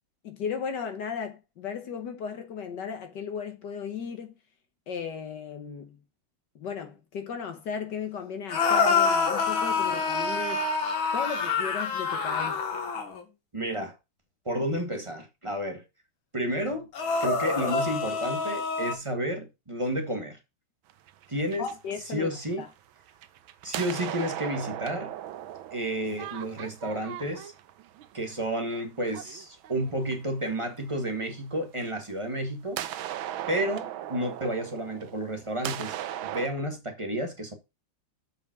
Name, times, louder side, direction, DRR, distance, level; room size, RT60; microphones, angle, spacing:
voice 1, 0.2-4.4 4.9-6.0 6.5-10.6 11.1-12.8 21.6-22.7, left 6 dB, 65° left, 1.6 m, -36 dB
sound 1, 8.5-13.2 16.9-18.9, left 4 dB, 80° left, 2.4 m, -26 dB
voice 2, 13.5-13.9 14.4-15.8 16.3-16.9 17.2-20.4 21.3-21.7 22.1-22.6 23.6-25.1 25.7-27.5 28.1-32.8 33.5-37.5, right 1 dB, 15° right, 1.5 m, -31 dB
sound 2, 20.9-22.7 23.1-30.3 31.8-31.9 32.8-36.5, right 12 dB, 85° right, 1.5 m, -38 dB
7.3 x 5.2 x 6.0 m
omnidirectional pair, 2.2 m